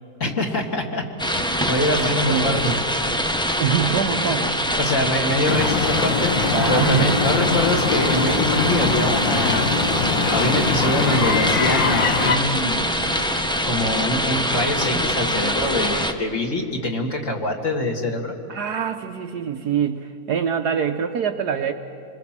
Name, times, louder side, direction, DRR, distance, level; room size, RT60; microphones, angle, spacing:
voice 1, 0.2-1.0 1.4-2.7 4.8-10.0 10.3-12.8 13.6-18.3, left 1 dB, 40° left, 1 dB, 2.3 m, -24 dB
sound 1, 1.2-16.1, equal, 5° left, 0.4 m, -24 dB
voice 2, 1.8-2.6 3.6-4.8 6.5-7.1 18.5-21.7, right 7 dB, 65° right, 6 dB, 1.2 m, -24 dB
sound 2, 5.5-12.4, left 5 dB, 70° left, 1.7 m, -23 dB
27.0 x 21.0 x 7.4 m, 2.6 s
omnidirectional pair, 2.1 m